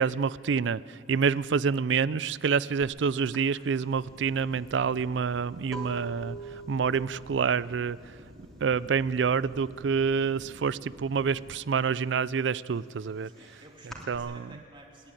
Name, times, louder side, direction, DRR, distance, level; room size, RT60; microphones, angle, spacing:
voice 1, 0.0-6.4 6.7-8.0 8.6-13.3 14.1-14.4, right 6 dB, 70° right, 19 dB, 0.4 m, -27 dB
sound 1, 2.8-3.0 3.3-9.0 9.3-9.8 10.1-11.2 11.6-14.2, right 2 dB, 5° left, 3.1 m, -44 dB
sound 2, 3.9-11.5, right 1 dB, 85° right, 2.5 m, -51 dB
voice 2, 13.2-15.1, right 1 dB, 30° right, 0 dB, 3.2 m, -52 dB
30.0 x 10.5 x 9.1 m, 2.4 s
head